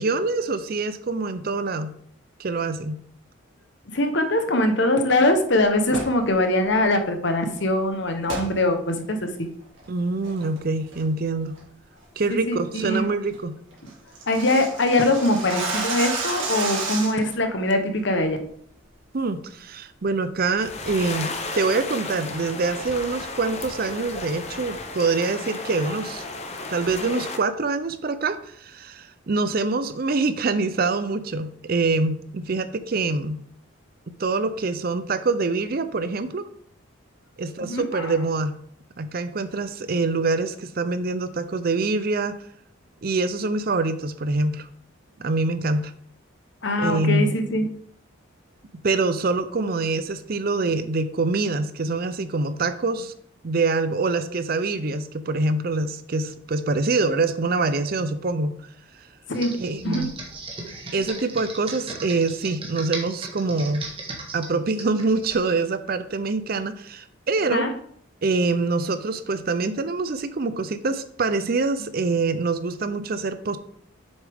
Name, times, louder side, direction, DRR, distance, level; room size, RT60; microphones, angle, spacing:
voice 1, 0.0-1.9 2.4-3.0 9.9-11.6 12.2-13.5 19.1-26.2 26.7-33.4 34.2-36.4 37.4-38.5 39.0-42.4 43.0-44.7 45.2-45.9 46.8-47.3 48.8-53.1 53.4-58.5 59.6-60.1 60.9-63.8 64.3-67.7 68.2-73.6, right 3 dB, 45° right, 12 dB, 0.5 m, -25 dB
voice 2, 3.9-9.5 12.3-13.1 13.8-13.9 14.3-18.4 37.6-38.1 46.6-47.7 59.3-59.5 59.8-60.1 67.5-67.7, left 1 dB, 55° left, 7 dB, 0.9 m, -22 dB
sound 1, 5.8-6.2 8.3-8.5 9.0-9.1 9.6-9.9 10.2-10.6 10.9-11.2 11.5-11.6 12.0-12.3 12.6-12.7 13.0-13.1 13.3-13.4 13.7-17.3, right 3 dB, 65° right, 2.4 m, -30 dB
sound 2, 20.6-27.4, left 3 dB, 30° left, 0.6 m, -34 dB
Computer keyboard, 59.3-65.4, right 3 dB, 25° right, 1.3 m, -37 dB
7.3 x 6.2 x 3.5 m, 0.64 s
head